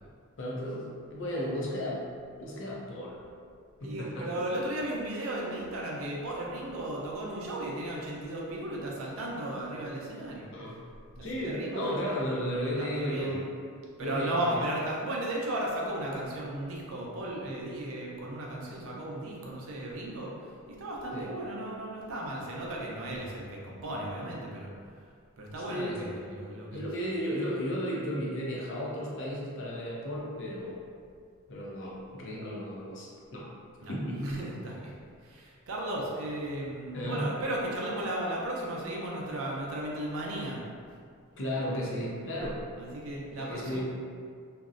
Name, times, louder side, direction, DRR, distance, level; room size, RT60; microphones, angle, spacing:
voice 1, 0.4-2.1 2.4-3.2 3.8-4.3 10.5-10.8 11.2-13.5 14.0-14.6 21.1-21.3 25.6-26.1 26.7-30.8 31.5-33.5 33.9-34.2 36.9-37.3 41.4-42.6 43.4-43.8, equal, 60° left, -4 dB, 0.5 m, -34 dB
voice 2, 3.8-10.5 11.2-12.1 12.5-13.3 14.0-25.0 25.4-26.9 33.8-34.9 35.2-40.6 42.0-42.1 42.8-43.8, right 1 dB, 65° right, -3 dB, 0.5 m, -35 dB
2.6 x 2.0 x 2.4 m, 2.2 s
head